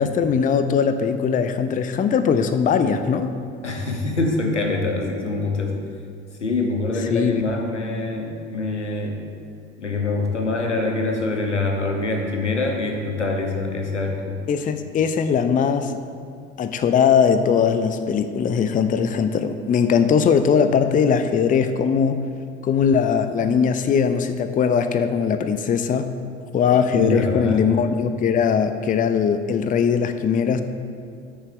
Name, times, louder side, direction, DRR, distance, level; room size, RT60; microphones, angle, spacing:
voice 1, 0.0-3.3 7.1-7.4 14.5-15.9 16.6-22.2 22.6-26.1 26.5-30.6, left 6 dB, 25° left, 10 dB, 0.6 m, -20 dB
voice 2, 3.6-5.8 6.4-9.3 9.8-14.4 26.9-27.7, left 2 dB, 90° left, 3 dB, 1.0 m, -24 dB
13.5 x 6.7 x 3.7 m, 2.3 s
figure-of-eight pair, 65°, 34 cm